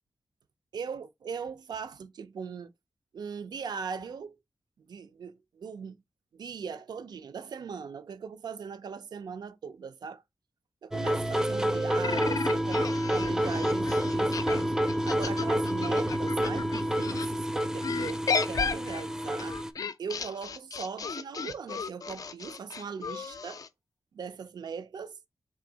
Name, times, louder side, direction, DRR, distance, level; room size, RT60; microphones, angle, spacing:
voice 1, 0.7-2.7 3.1-4.4 4.8-6.0 6.3-10.2 10.8-14.7 15.1-19.6 20.0-23.6 24.1-25.2, right 6 dB, 85° right, 0.5 m, -40 dB
sound 1, 10.9-19.7, equal, 10° right, 0.4 m, -29 dB
sound 2, 12.0-17.3 17.8-23.7, left 5 dB, 60° left, 0.3 m, -34 dB
3.6 x 2.7 x 3.8 m
wide cardioid pair, 75°, 7 cm